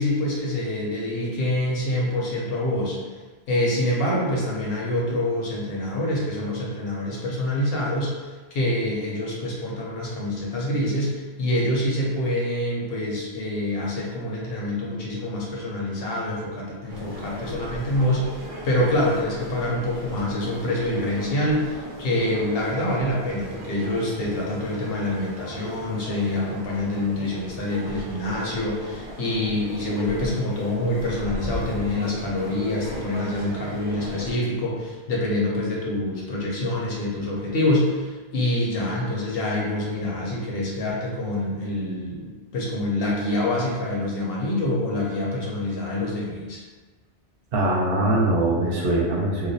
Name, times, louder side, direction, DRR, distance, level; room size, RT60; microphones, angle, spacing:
voice 1, 0.0-3.2 3.5-46.6, left 1 dB, 70° left, -3 dB, 0.8 m, -26 dB
sound 1, 16.9-34.3, equal, 30° right, 0.4 m, -37 dB
voice 2, 47.5-49.5, right 1 dB, 65° right, -4 dB, 0.7 m, -22 dB
2.3 x 2.0 x 2.6 m, 1.3 s
omnidirectional pair, 1.1 m